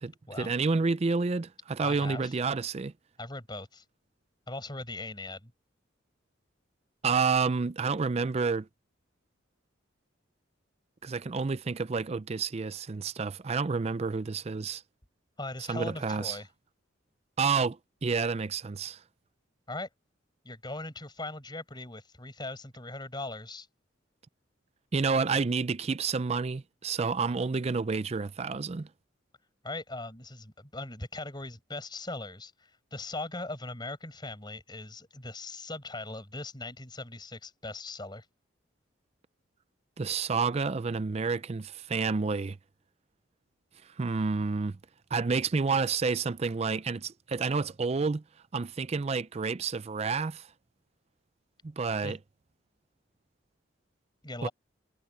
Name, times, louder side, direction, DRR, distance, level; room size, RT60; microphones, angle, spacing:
voice 1, 0.0-2.9 7.0-8.7 11.0-14.8 15.7-16.4 17.4-19.0 24.9-28.9 40.0-42.6 44.0-44.8 45.1-48.2 48.5-50.5 51.6-52.2 54.4-54.5, right 4 dB, 30° right, 0.4 m, -29 dB
voice 2, 1.8-2.3 3.2-3.8 4.5-5.5 15.4-16.5 19.7-19.9 20.4-23.7 29.6-38.2 52.0-52.2 54.2-54.5, left 2 dB, 20° left, 6.2 m, -40 dB
head